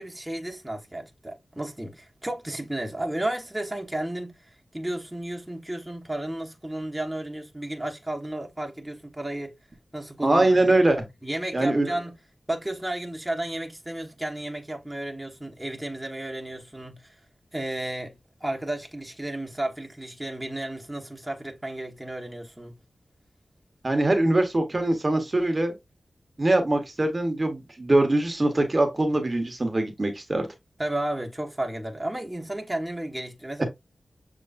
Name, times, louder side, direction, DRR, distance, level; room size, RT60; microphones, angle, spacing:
voice 1, 0.0-4.3 4.7-9.5 9.9-10.7 11.2-12.1 12.5-17.1 17.5-22.7 30.8-33.6, right 1 dB, 10° right, 1.1 m, -33 dB
voice 2, 10.2-11.0 11.5-11.9 23.8-25.7 26.4-30.5 33.6-33.7, right 2 dB, 35° right, 1.0 m, -22 dB
6.7 x 3.0 x 2.5 m
wide cardioid pair, 80°, 0 cm